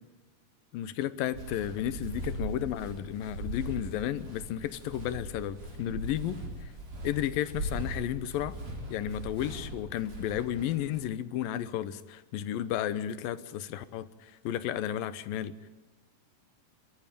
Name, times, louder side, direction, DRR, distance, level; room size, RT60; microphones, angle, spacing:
voice 1, 0.7-6.4 7.0-8.6 8.9-15.5, left 11 dB, 75° left, 15 dB, 2.7 m, -33 dB
Walk footsteps, 1.3-11.0, right 1 dB, 45° right, 5.5 m, -40 dB
30.0 x 14.0 x 9.1 m, 1.1 s
omnidirectional pair, 4.2 m